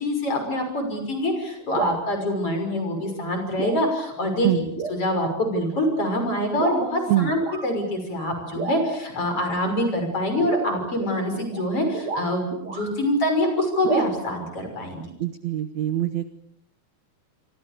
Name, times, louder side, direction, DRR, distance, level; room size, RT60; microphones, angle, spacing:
voice 1, 0.0-15.1, left 1 dB, 35° left, 5 dB, 6.9 m, -25 dB
Flexing a Piece of Resonating Copper Sheet Metal, 1.6-2.0 3.0-3.2 3.6-3.9 4.2-4.3 4.7-5.0 5.7-5.8 6.6-6.9 7.4-7.7 8.5-9.1 10.4-13.0 13.8-14.0, right 4 dB, 35° right, 2.1 m, -31 dB
voice 2, 15.2-16.3, right 12 dB, 65° right, 11 dB, 1.9 m, -23 dB
27.5 x 25.0 x 6.8 m, 0.73 s
omnidirectional pair, 4.4 m